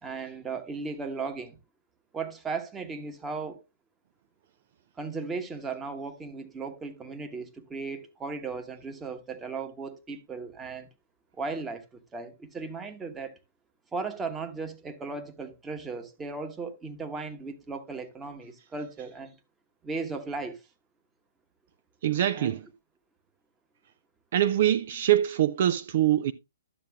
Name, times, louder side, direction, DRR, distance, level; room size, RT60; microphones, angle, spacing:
voice 1, 0.0-1.6 2.1-3.6 5.0-10.9 11.3-13.4 13.9-19.3 19.8-20.6 22.3-22.6, right 4 dB, 15° right, 1.1 m, -36 dB
voice 2, 22.0-22.7 24.3-26.3, right 12 dB, 50° right, 0.4 m, -24 dB
12.0 x 7.5 x 2.2 m
hypercardioid pair, 130°, 0 cm